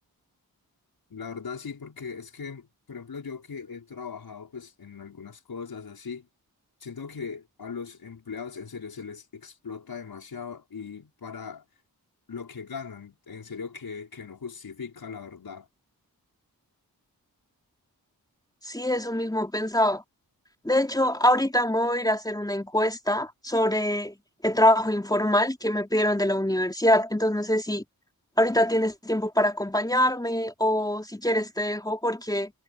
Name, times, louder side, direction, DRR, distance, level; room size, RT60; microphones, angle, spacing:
voice 1, 1.1-6.3 6.8-11.6 12.3-15.7, left 5 dB, 75° left, 5.4 m, -39 dB
voice 2, 18.6-20.0 20.7-24.1 24.4-27.8 28.4-32.5, left 1 dB, 10° left, 3.4 m, -24 dB
wide cardioid pair, 80°, 37 cm